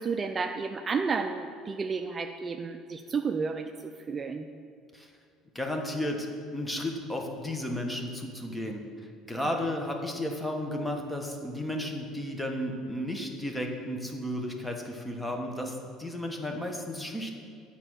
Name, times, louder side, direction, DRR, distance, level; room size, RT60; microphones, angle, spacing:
voice 1, 0.0-4.5, right 5 dB, 30° right, 6 dB, 0.4 m, -32 dB
voice 2, 5.5-8.8 9.3-17.3, left 1 dB, 10° left, 2 dB, 1.2 m, -33 dB
9.0 x 4.3 x 6.3 m, 2.3 s
supercardioid pair, 90°, 0 cm